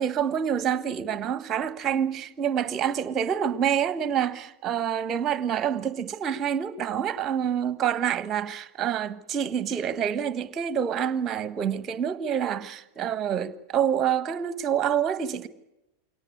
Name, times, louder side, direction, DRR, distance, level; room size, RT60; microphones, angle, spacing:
voice 1, 0.0-15.5, right 8 dB, 30° right, 1.3 m, -27 dB
23.0 x 18.0 x 9.7 m
figure-of-eight pair, 90°, 0 cm